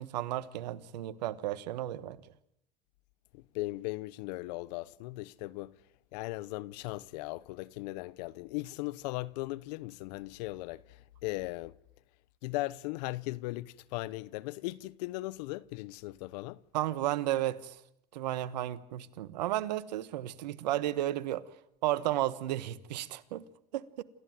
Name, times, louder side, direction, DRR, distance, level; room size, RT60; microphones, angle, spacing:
voice 1, 0.0-2.2 16.7-17.8 18.1-21.4 21.8-23.4 23.7-24.0, right 14 dB, 90° right, 1.4 m, -33 dB
voice 2, 3.3-5.7 6.1-10.8 11.2-11.7 12.4-16.6, left 20 dB, 75° left, 1.0 m, -38 dB
28.5 x 14.5 x 9.4 m
supercardioid pair, 90°, 21 cm